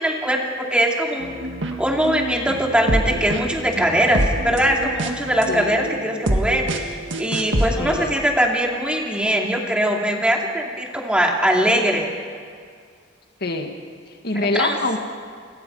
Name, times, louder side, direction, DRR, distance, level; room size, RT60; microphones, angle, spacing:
voice 1, 0.0-1.3 1.8-12.1 14.5-14.8, equal, 5° right, 0 dB, 2.5 m, -21 dB
sound 1, 1.2-7.7, right 1 dB, 80° right, 1.8 m, -26 dB
voice 2, 5.5-5.9 7.8-8.1 13.4-13.8 14.1-15.0, left 2 dB, 55° left, 4 dB, 1.9 m, -25 dB
29.0 x 21.5 x 5.5 m, 2.1 s
head